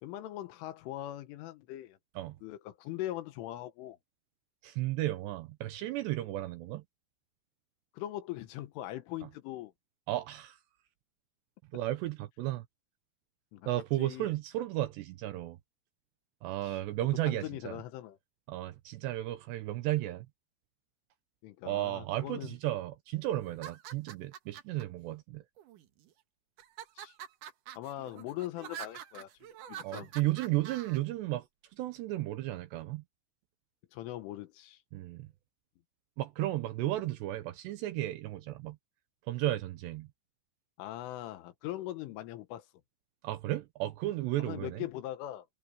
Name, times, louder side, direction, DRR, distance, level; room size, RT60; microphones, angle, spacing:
voice 1, 0.0-2.0 2.4-4.0 7.9-9.7 13.5-13.7 14.0-14.3 16.6-16.8 17.3-18.2 21.4-22.6 27.0-27.1 27.8-29.3 29.7-30.1 33.9-34.8 40.8-42.7 44.4-45.5, left 14 dB, 80° left, 3.8 m, -41 dB
voice 2, 4.6-6.8 10.1-10.6 11.7-12.7 13.7-15.6 16.4-17.8 18.5-20.3 21.6-25.4 29.8-31.5 31.7-33.0 34.9-35.3 36.2-38.8 39.3-40.1 43.2-44.9, right 15 dB, 80° right, 2.6 m, -34 dB
sound 1, 23.5-24.8 25.6-26.1 26.6-31.0, right 10 dB, 65° right, 2.1 m, -46 dB
omnidirectional pair, 5.7 m